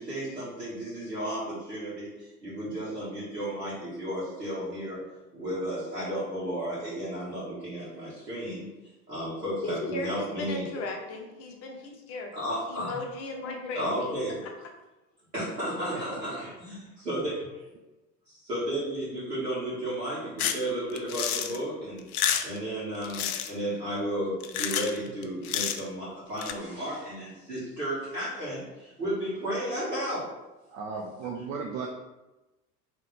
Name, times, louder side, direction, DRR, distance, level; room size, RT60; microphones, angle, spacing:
voice 1, 0.0-5.0 5.3-8.7 9.1-10.7 12.3-13.0 13.7-14.4 15.3-17.5 18.3-22.0 22.4-30.3, right 1 dB, 80° right, -11 dB, 1.4 m, -33 dB
voice 2, 9.6-12.3 12.7-14.1 14.4-14.5, left 3 dB, 30° left, 2 dB, 0.8 m, -36 dB
voice 3, 15.9-16.5 30.7-31.9, right 5 dB, 30° right, 0 dB, 0.4 m, -36 dB
sound 1, 20.4-20.6 21.0-21.6 22.0-22.6 23.0-23.5 24.4-25.0 25.2-25.9 26.4-26.5, left 9 dB, 65° left, 0.5 m, -29 dB
3.7 x 3.0 x 3.3 m, 1.0 s
figure-of-eight pair, 75°, 48 cm